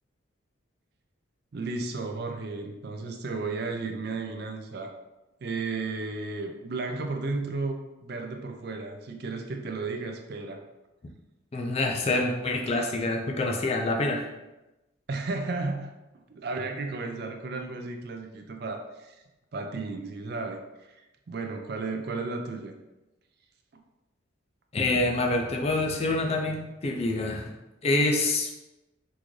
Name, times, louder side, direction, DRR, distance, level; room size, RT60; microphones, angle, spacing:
voice 1, 1.5-4.9 5.4-10.6 15.1-15.9 16.3-19.2 19.5-22.7, right 3 dB, 50° right, 4 dB, 0.4 m, -34 dB
voice 2, 11.5-14.3 24.7-27.5 27.8-28.5, left 2 dB, 30° left, 2 dB, 0.4 m, -26 dB
3.6 x 2.5 x 3.1 m, 1.0 s
head